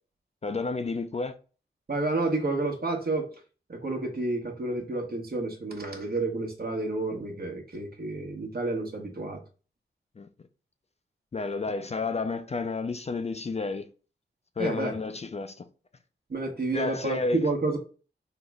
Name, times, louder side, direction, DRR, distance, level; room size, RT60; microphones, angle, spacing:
voice 1, 0.4-1.3 10.2-10.3 11.3-13.9 14.6-15.7 16.7-17.4, left 3 dB, 35° left, 0.4 m, -31 dB
voice 2, 1.9-3.3 3.7-9.4 14.6-15.0 16.3-17.8, right 2 dB, 50° right, 1.0 m, -30 dB
3.8 x 2.0 x 3.4 m
cardioid pair, 45°, 20 cm